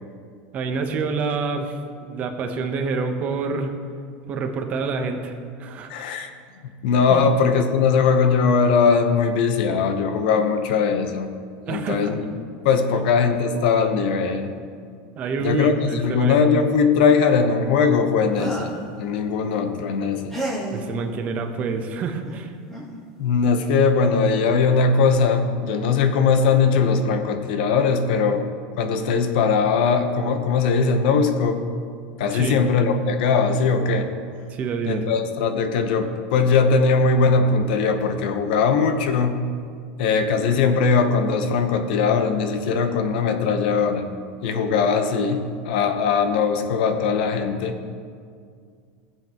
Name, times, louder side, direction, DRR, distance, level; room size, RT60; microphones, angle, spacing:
voice 1, 0.5-1.8 2.1-3.7 4.3-5.3 5.6-5.9 7.1-7.2 11.7-12.1 15.2-16.4 20.7-22.5 32.3-32.6 34.5-35.0, right 4 dB, 30° right, 5 dB, 0.9 m, -27 dB
voice 2, 5.9-6.3 6.8-11.3 11.7-12.3 12.6-14.5 15.4-18.7 19.0-20.3 23.2-28.4 28.8-31.6 32.2-34.1 34.9-39.4 40.0-44.1 44.4-47.8, left 5 dB, 70° left, 7 dB, 0.9 m, -20 dB
sound 1, 18.3-18.9 20.3-20.8 22.2-22.3 22.7-23.0, right 1 dB, 5° left, 2.2 m, -30 dB
17.0 x 7.5 x 3.0 m, 2.2 s
supercardioid pair, 165°, 5 cm